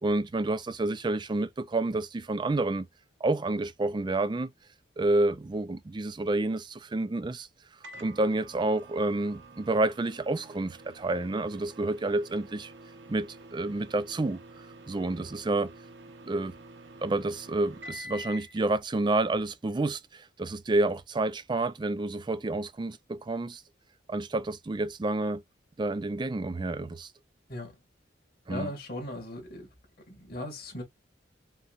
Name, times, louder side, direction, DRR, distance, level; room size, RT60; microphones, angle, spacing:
voice 1, 0.0-2.9 3.2-4.5 5.0-7.5 8.0-12.7 13.1-14.4 14.9-15.7 16.2-16.5 17.0-23.6 24.1-25.4 25.8-27.1 28.5-28.7, right 2 dB, 25° right, 0.3 m, -29 dB
Microwave oven, 7.8-18.6, right 1 dB, 60° right, 0.7 m, -48 dB
voice 2, 28.5-29.7 30.1-30.8, left 1 dB, 50° left, 2.2 m, -38 dB
5.5 x 2.2 x 2.4 m
head